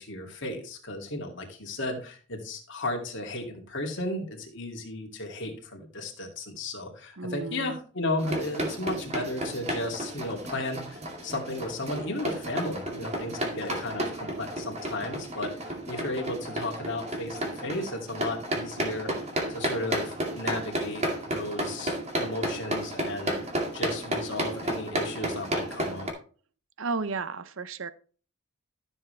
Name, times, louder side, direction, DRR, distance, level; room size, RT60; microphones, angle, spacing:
voice 1, 0.0-19.1 19.5-21.1 21.3-23.4 23.7-26.1, left 1 dB, 55° left, 1 dB, 2.6 m, -34 dB
voice 2, 7.2-7.8 26.8-27.9, right 4 dB, 60° right, 14 dB, 0.7 m, -33 dB
sound 1, 8.2-26.1, right 1 dB, 30° right, 2.2 m, -32 dB
13.5 x 7.3 x 3.3 m, 0.40 s
head